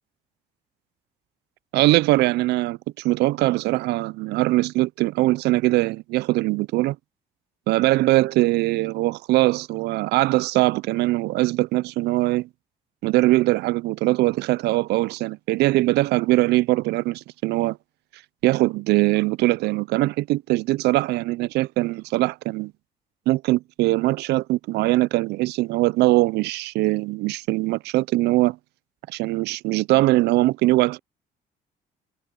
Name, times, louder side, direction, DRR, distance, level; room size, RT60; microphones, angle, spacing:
voice 1, 1.7-7.0 7.7-12.5 13.0-17.8 18.4-22.7 23.3-28.6 29.1-31.0, right 19 dB, 80° right, 0.5 m, -21 dB
cardioid pair, 110°, 17 cm